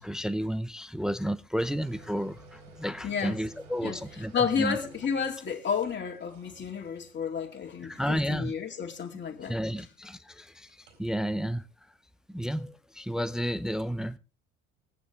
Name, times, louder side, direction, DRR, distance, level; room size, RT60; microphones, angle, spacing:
voice 1, 0.0-4.8 7.8-8.5 9.5-11.7 12.3-14.2, equal, ahead, 0.7 m, -32 dB
sound 1, 1.7-9.3 10.7-11.0, right 2 dB, 55° right, 4.3 m, -54 dB
voice 2, 3.0-3.4 3.8-4.0 4.3-9.5, left 6 dB, 30° left, 2.5 m, -31 dB
23.0 x 9.4 x 3.4 m
figure-of-eight pair, 65°, 39 cm